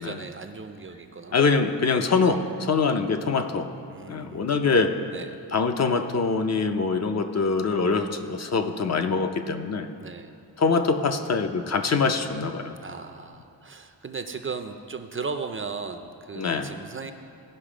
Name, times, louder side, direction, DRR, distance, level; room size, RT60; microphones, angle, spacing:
voice 1, 0.0-1.4 3.9-4.5 5.1-5.3 10.0-10.3 12.8-17.1, right 4 dB, 30° right, 7 dB, 0.4 m, -36 dB
voice 2, 1.3-3.7 4.1-4.9 5.5-9.9 10.6-12.8 16.4-16.7, left 4 dB, 40° left, 7 dB, 0.6 m, -24 dB
17.0 x 5.7 x 5.0 m, 2.6 s
wide cardioid pair, 150°, 42 cm